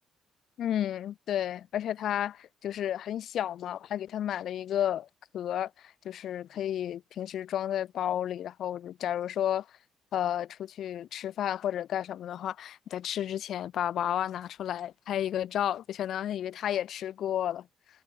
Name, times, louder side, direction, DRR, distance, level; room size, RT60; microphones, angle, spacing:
voice 1, 0.6-5.1 5.3-9.7 10.1-17.7, left 10 dB, 65° left, 1.6 m, -32 dB
cardioid pair, 130°, 0 cm